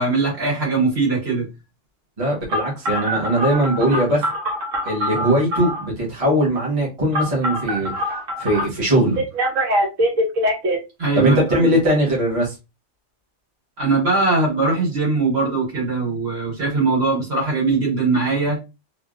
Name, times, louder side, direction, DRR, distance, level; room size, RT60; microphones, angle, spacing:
voice 1, 0.0-1.5 11.0-11.7 13.8-18.6, right 3 dB, 55° right, 1.9 m, -21 dB
voice 2, 2.2-4.2 4.8-7.9 8.4-9.2 11.1-12.5, right 1 dB, 30° right, 1.1 m, -20 dB
Telephone, 2.5-5.9 7.1-8.6 9.2-10.8, equal, 85° right, 1.3 m, -23 dB
3.2 x 2.4 x 2.4 m
omnidirectional pair, 1.3 m